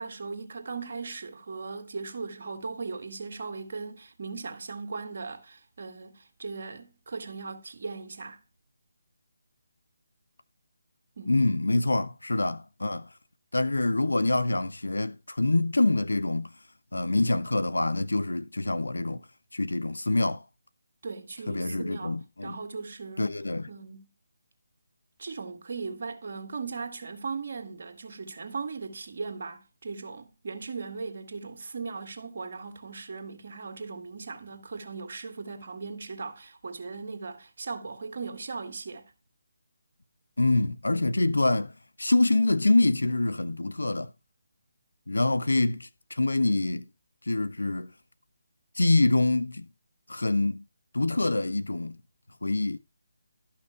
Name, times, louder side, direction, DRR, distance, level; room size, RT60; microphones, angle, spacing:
voice 1, 0.0-8.4 11.2-11.3 21.0-23.3 23.7-24.1 25.2-39.1, right 4 dB, 50° right, 1.9 m, -38 dB
voice 2, 11.3-13.1 13.5-16.5 16.9-19.2 19.5-20.4 21.5-22.5 23.2-23.7 40.4-41.7 42.0-44.1 45.1-46.8 47.3-47.9 48.8-49.7 50.1-50.6 50.9-52.0 52.4-52.8, left 2 dB, 85° left, 0.8 m, -25 dB
12.5 x 5.9 x 4.9 m
figure-of-eight pair, 155°, 0 cm